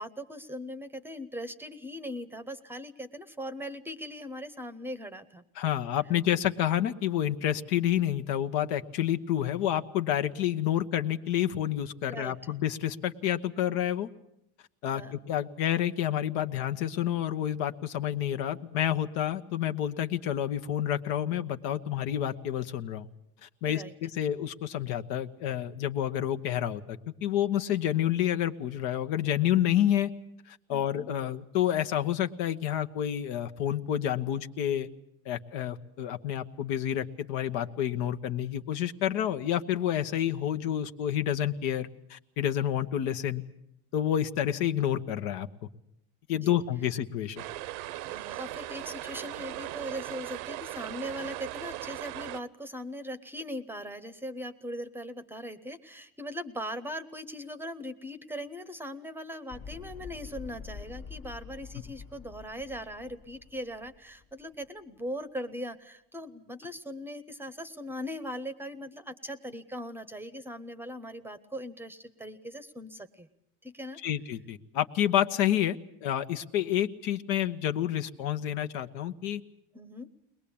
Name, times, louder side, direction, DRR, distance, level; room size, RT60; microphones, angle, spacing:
voice 1, 0.0-5.4 12.1-12.5 14.9-15.2 23.6-23.9 30.7-31.1 46.3-46.6 48.0-73.3 73.6-74.0 79.7-80.1, equal, 5° right, 13 dB, 0.9 m, -40 dB
voice 2, 5.6-14.1 14.8-23.1 23.4-30.1 30.5-34.9 35.2-43.4 43.9-45.5 46.3-47.4 74.0-79.4, left 11 dB, 65° left, 7 dB, 1.3 m, -29 dB
sound 1, 47.4-52.4, right 16 dB, 65° right, 0.8 m, -38 dB
sound 2, 59.5-64.7, left 5 dB, 40° left, 1.4 m, -46 dB
22.0 x 20.5 x 8.7 m, 0.78 s
supercardioid pair, 135°, 34 cm